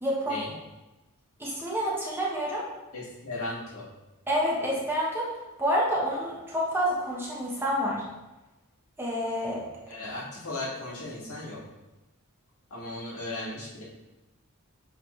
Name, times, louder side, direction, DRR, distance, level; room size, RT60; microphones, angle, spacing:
voice 1, 0.0-0.4 1.4-2.7 4.3-5.3 5.6-8.0 9.0-9.7, equal, 10° right, -5 dB, 1.3 m, -28 dB
voice 2, 2.9-3.9 9.9-11.6 12.7-13.8, left 2 dB, 80° left, -7 dB, 2.3 m, -36 dB
8.0 x 4.1 x 3.3 m, 1.0 s
head